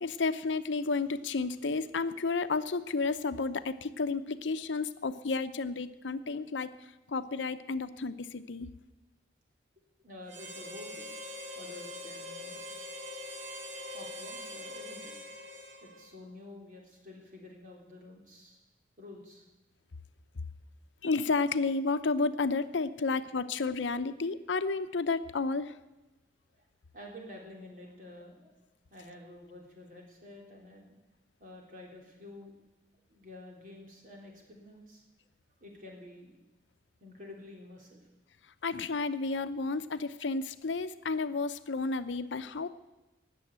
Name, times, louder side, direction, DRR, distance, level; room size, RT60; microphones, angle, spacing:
voice 1, 0.0-6.8 7.1-8.7 21.0-25.8 38.6-42.7, left 4 dB, 80° left, 12 dB, 0.7 m, -31 dB
voice 2, 10.0-11.0 11.5-12.6 13.9-15.1 15.8-18.6 19.0-19.4 26.5-26.7 26.9-28.5 28.9-30.9 31.4-32.5 33.1-35.0 35.6-36.4 37.0-38.1, left 1 dB, 45° right, 0 dB, 3.4 m, -49 dB
Harmonica, 10.3-16.2, left 1 dB, 80° right, 2.1 m, -43 dB
18.5 x 7.1 x 8.1 m, 1.1 s
head